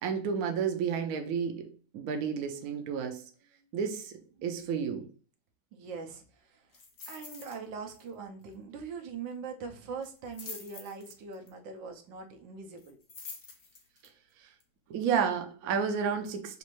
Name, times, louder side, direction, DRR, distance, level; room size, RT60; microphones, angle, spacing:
voice 1, 0.0-3.2 3.7-5.1 14.9-16.6, right 6 dB, 65° right, 0.9 m, -31 dB
voice 2, 4.4-4.7 5.7-6.8 7.1-13.0, right 5 dB, 80° right, 1.4 m, -42 dB
sound 1, 6.7-7.6 7.9-8.1 8.4-8.5 10.0-11.5 12.8-14.1 14.6-14.7, left 4 dB, 50° left, 0.7 m, -46 dB
5.3 x 2.5 x 3.0 m
omnidirectional pair, 2.0 m